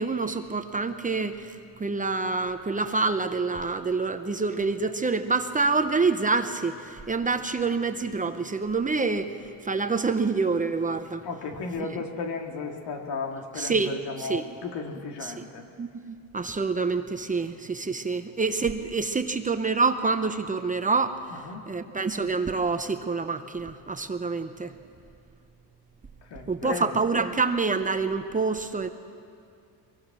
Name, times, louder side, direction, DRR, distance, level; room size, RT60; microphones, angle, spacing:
voice 1, 0.0-9.4 9.6-11.2 11.8-11.9 13.6-14.4 15.2-15.5 15.8-21.2 21.7-24.7 26.5-28.9, right 4 dB, 20° right, 8 dB, 0.8 m, -27 dB
voice 2, 11.2-15.6 21.3-21.6 26.3-26.9, left 4 dB, 75° left, 3 dB, 2.5 m, -35 dB
23.0 x 22.5 x 6.2 m, 2.4 s
cardioid pair, 125°, 41 cm